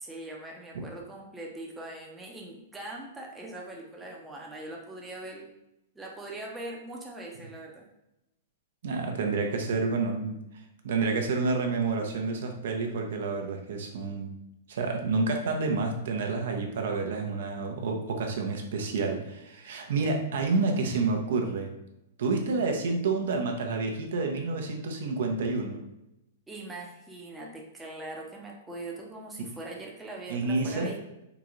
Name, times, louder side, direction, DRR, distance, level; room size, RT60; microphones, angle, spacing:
voice 1, 0.0-5.5 6.0-7.9 26.5-31.0, right 2 dB, 10° right, -2 dB, 0.6 m, -41 dB
voice 2, 8.8-10.4 10.8-14.3 14.7-21.7 22.2-25.8 30.3-30.9, right 3 dB, 70° right, 3 dB, 0.6 m, -29 dB
3.8 x 2.4 x 3.0 m, 0.89 s
hypercardioid pair, 140°, 0 cm